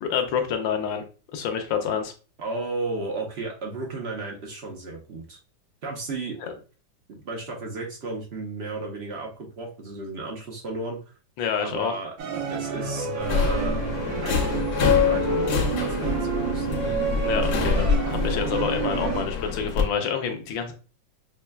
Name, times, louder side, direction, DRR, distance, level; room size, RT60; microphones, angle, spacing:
voice 1, 0.0-1.0 1.3-2.1 6.4-6.5 11.4-11.9 17.2-20.7, left 7 dB, 85° left, 5 dB, 1.4 m, -28 dB
voice 2, 2.4-5.4 5.8-6.5 7.1-11.0 11.6-12.1 12.5-13.8 14.2-14.6 15.0-16.7, right 3 dB, 65° right, 0 dB, 0.6 m, -33 dB
sound 1, 12.2-19.2, right 7 dB, 80° right, 1.5 m, -29 dB
Subway metro underground, 13.2-19.8, left 6 dB, 65° left, 1.0 m, -25 dB
6.0 x 2.2 x 2.2 m, 0.37 s
omnidirectional pair, 2.1 m